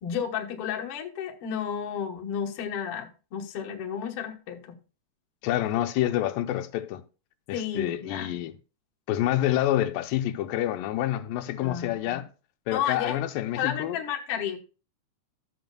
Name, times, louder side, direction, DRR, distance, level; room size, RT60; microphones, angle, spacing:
voice 1, 0.0-4.8 7.5-8.4 11.6-12.2 12.7-13.2 13.6-14.6, left 8 dB, 55° left, 1.8 m, -32 dB
voice 2, 5.4-7.0 7.5-8.5 9.1-12.3 12.7-14.0, left 13 dB, 85° left, 2.4 m, -27 dB
14.0 x 7.8 x 2.3 m
omnidirectional pair, 3.9 m